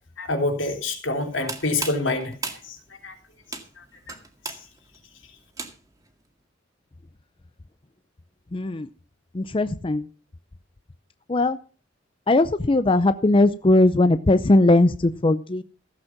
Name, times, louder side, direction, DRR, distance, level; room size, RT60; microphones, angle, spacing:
voice 1, 0.2-3.1 3.8-3.9 4.5-4.6, left 2 dB, 85° left, 3.4 m, -27 dB
sound 1, 1.2-6.1, right 4 dB, 20° right, 2.0 m, -37 dB
voice 2, 8.5-8.9 9.3-10.0 11.3-11.6 12.3-15.6, left 2 dB, 30° left, 0.5 m, -19 dB
15.5 x 8.0 x 5.9 m
head